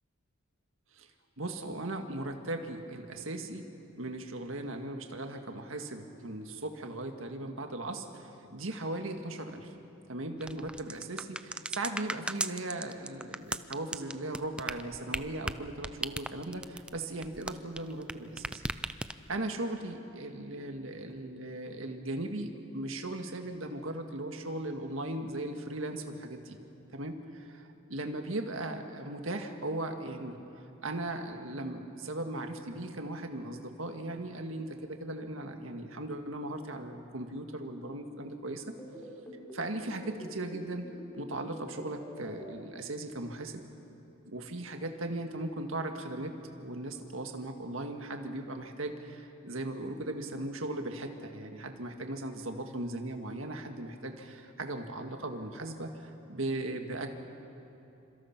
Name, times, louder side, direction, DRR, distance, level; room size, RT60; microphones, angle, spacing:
voice 1, 1.4-3.7 4.0-9.7 10.1-18.6 19.3-26.6 26.9-30.4 30.8-38.7 39.5-40.9 41.2-43.6 44.3-57.1, right 2 dB, 70° right, 5 dB, 1.8 m, -38 dB
sound 1, 10.4-18.1 18.4-19.4, right 1 dB, 5° right, 0.5 m, -36 dB
sound 2, 38.6-42.5, equal, 10° left, 4.7 m, -45 dB
28.0 x 26.0 x 6.0 m, 2.9 s
head